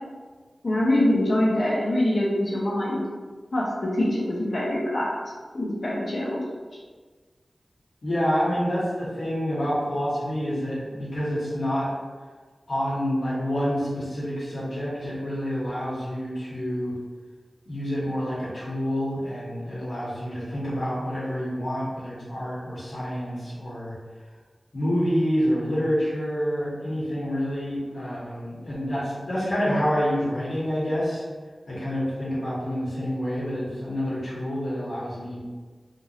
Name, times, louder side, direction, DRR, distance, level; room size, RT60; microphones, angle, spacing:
voice 1, 0.6-3.0 3.5-5.1 5.5-6.4, left 1 dB, 60° left, -4 dB, 1.0 m, -24 dB
voice 2, 8.0-11.9 12.7-16.9 17.7-23.9 24.7-31.2 31.7-35.4, equal, 80° left, -9 dB, 1.3 m, -28 dB
3.5 x 2.6 x 3.1 m, 1.4 s
wide cardioid pair, 60°, 0 cm